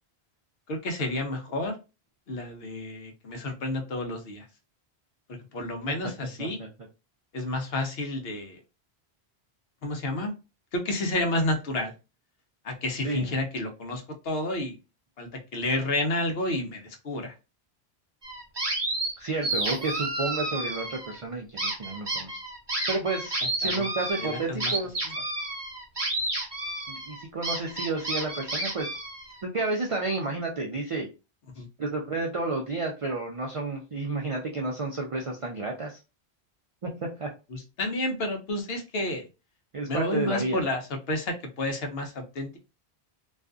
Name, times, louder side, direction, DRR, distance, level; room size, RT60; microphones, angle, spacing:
voice 1, 0.7-1.8 2.3-4.5 5.5-6.6 7.3-8.6 9.8-10.3 10.7-11.9 12.6-14.8 15.2-17.3 23.6-23.9 24.2-24.7 31.5-31.7 37.5-39.3 39.9-42.6, left 2 dB, 70° left, 4 dB, 0.9 m, -30 dB
sound 1, 18.2-19.1 19.4-21.2 21.6-29.4, right 2 dB, 25° right, 0.8 m, -31 dB
voice 2, 19.2-22.4 22.9-25.1 26.9-28.9 29.4-31.1 31.8-36.0 36.8-37.3 39.7-40.6, right 3 dB, 60° right, 0 dB, 0.3 m, -31 dB
sound 2, 19.5-21.3, left 2 dB, 40° left, 0.6 m, -51 dB
2.5 x 2.3 x 2.3 m, 0.29 s
omnidirectional pair, 1.1 m